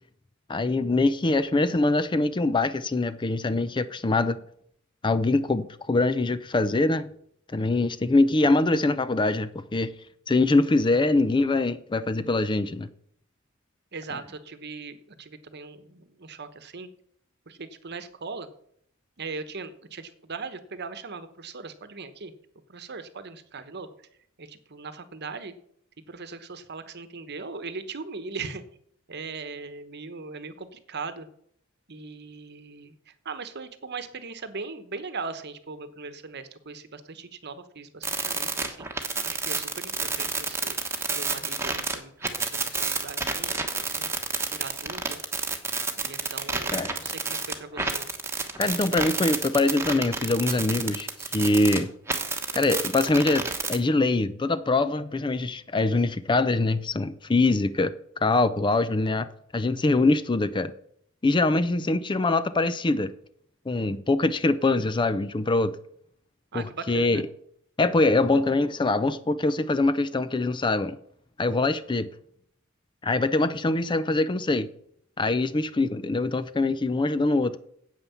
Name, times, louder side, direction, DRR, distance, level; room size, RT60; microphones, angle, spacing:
voice 1, 0.5-4.4 5.0-7.1 7.5-9.9 10.3-12.9 46.7-46.9 48.6-51.9 52.5-57.9 58.2-60.7 61.2-63.1 63.7-65.7 66.5-67.2 67.8-71.0 71.4-72.1 73.0-74.7 75.2-77.6, left 2 dB, 20° left, 0.5 m, -23 dB
voice 2, 13.9-16.9 17.5-18.5 19.2-22.3 22.7-23.9 24.4-25.5 26.1-28.6 29.1-31.3 31.9-38.9 39.2-40.8 41.1-44.1 44.5-45.3 45.9-48.1 66.5-67.2, right 4 dB, 50° right, 1.1 m, -39 dB
sound 1, 38.0-42.0 42.2-51.8 52.1-53.8, right 4 dB, 10° right, 1.2 m, -29 dB
9.2 x 8.2 x 7.1 m
head